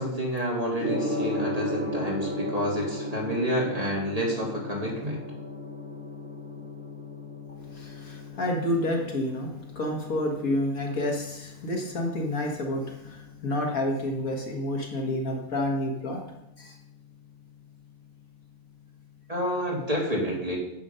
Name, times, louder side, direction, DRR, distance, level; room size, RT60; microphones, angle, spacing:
voice 1, 0.0-5.2 19.3-20.6, equal, 25° right, -4 dB, 3.0 m, -29 dB
Gong, 0.8-19.8, left 1 dB, 55° right, 5.2 m, -37 dB
voice 2, 7.7-16.2 16.6-16.7, left 1 dB, 70° left, 1 dB, 2.1 m, -29 dB
10.5 x 7.0 x 5.7 m, 0.86 s
omnidirectional pair, 1.6 m